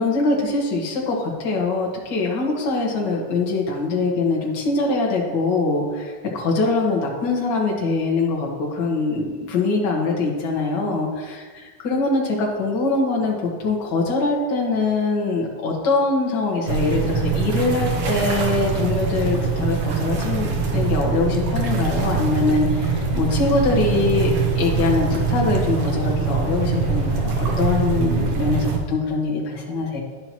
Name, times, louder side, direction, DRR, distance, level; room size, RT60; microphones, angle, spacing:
voice 1, 0.0-11.4 11.8-30.0, left 3 dB, 45° left, -2 dB, 1.6 m, -23 dB
sound 1, 16.7-28.8, right 4 dB, 65° right, 1.5 m, -23 dB
11.0 x 5.7 x 3.0 m, 1.5 s
omnidirectional pair, 3.4 m